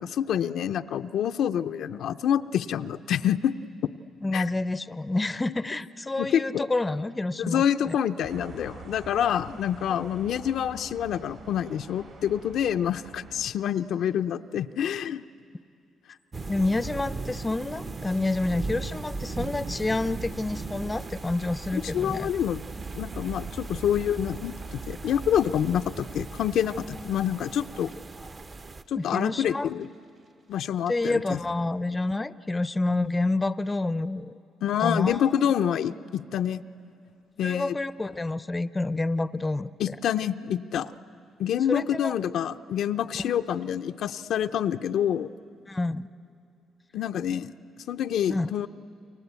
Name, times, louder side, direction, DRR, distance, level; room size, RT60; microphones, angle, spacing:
voice 1, 0.0-3.5 4.3-4.4 6.2-6.6 7.4-15.2 21.7-22.6 23.0-27.9 28.9-29.9 30.5-31.4 34.6-36.6 37.4-37.8 39.8-40.9 41.4-45.3 46.9-47.5 47.9-48.7, left 9 dB, 75° left, 8 dB, 0.5 m, -27 dB
voice 2, 4.2-8.0 9.5-9.6 9.9-10.1 16.5-22.3 29.0-29.7 30.9-34.3 34.8-35.2 37.4-40.0 41.7-42.1 45.7-46.1 48.3-48.5, left 2 dB, 20° left, 15 dB, 0.6 m, -28 dB
sound 1, 8.2-13.5, right 4 dB, 75° right, 4.1 m, -46 dB
sound 2, 16.3-28.8, right 3 dB, 35° right, 0.8 m, -38 dB
sound 3, 18.1-29.2 29.5-29.9 30.2-30.3, right 4 dB, 50° right, 2.5 m, -43 dB
29.5 x 23.5 x 8.2 m, 2.6 s
cardioid pair, 90°, 0 cm